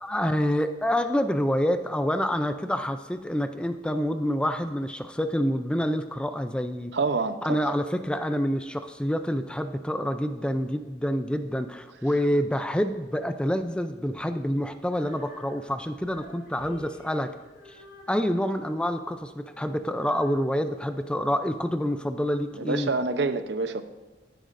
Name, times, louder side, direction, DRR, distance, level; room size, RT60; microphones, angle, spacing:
voice 1, 0.0-6.9 7.4-17.3 18.1-22.9, equal, 5° left, 9 dB, 0.4 m, -27 dB
voice 2, 6.9-7.6 22.6-23.8, right 3 dB, 80° right, 10 dB, 0.7 m, -27 dB
Female singing, 14.8-21.9, left 1 dB, 80° left, 3.0 m, -51 dB
14.0 x 10.5 x 2.6 m, 1.2 s
head